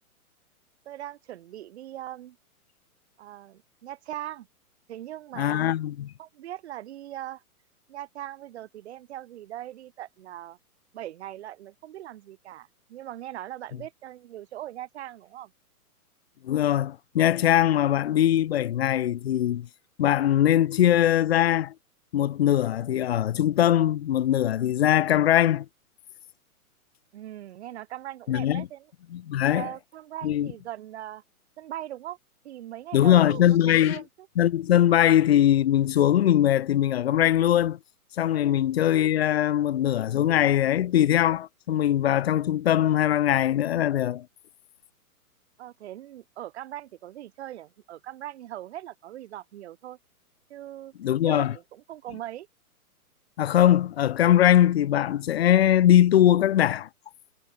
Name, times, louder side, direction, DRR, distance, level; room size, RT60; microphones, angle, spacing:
voice 1, 0.8-2.4 3.2-4.5 4.9-5.7 6.2-7.4 7.9-10.6 10.9-15.5 27.1-28.9 29.5-31.2 31.6-32.2 32.4-34.3 38.4-38.7 45.6-50.0 50.5-50.9 51.2-52.5, right 13 dB, 45° right, 3.3 m, -40 dB
voice 2, 5.4-6.1 16.4-19.7 20.0-21.7 22.1-25.7 28.3-28.7 29.1-29.7 30.2-30.5 32.9-34.0 34.4-37.8 38.2-44.2 51.0-51.5 53.4-56.9, left 11 dB, 45° left, 0.6 m, -21 dB
hypercardioid pair, 165°, 45 cm